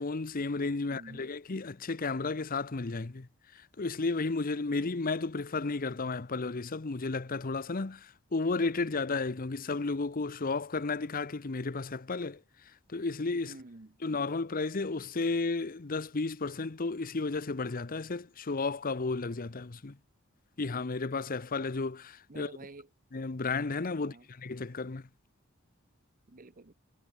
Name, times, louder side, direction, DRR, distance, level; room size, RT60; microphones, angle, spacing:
voice 1, 0.0-12.4 12.9-13.6 14.0-20.0 20.6-22.5 23.1-25.1, left 3 dB, 45° left, 0.8 m, -33 dB
voice 2, 0.8-1.3 13.4-14.0 22.3-22.9 24.0-24.3 26.3-26.7, right 2 dB, 45° right, 1.0 m, -50 dB
head